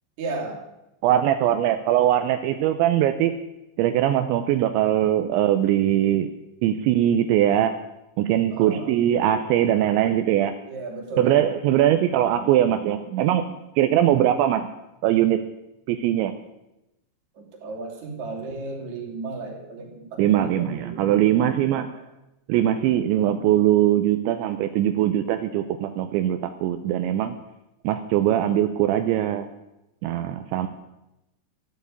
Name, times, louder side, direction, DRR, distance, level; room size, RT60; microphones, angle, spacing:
voice 1, 0.2-0.6 8.5-9.0 10.7-11.4 17.4-21.1 21.7-22.0, right 3 dB, 45° right, 0 dB, 3.7 m, -34 dB
voice 2, 1.0-3.3 3.8-6.3 6.6-7.7 8.2-10.5 11.2-14.7 15.0-15.4 15.9-16.3 20.2-21.9 22.5-27.4 27.8-29.5 30.0-30.7, right 11 dB, 80° right, 8 dB, 3.0 m, -21 dB
14.0 x 9.1 x 8.5 m, 0.92 s
omnidirectional pair, 5.3 m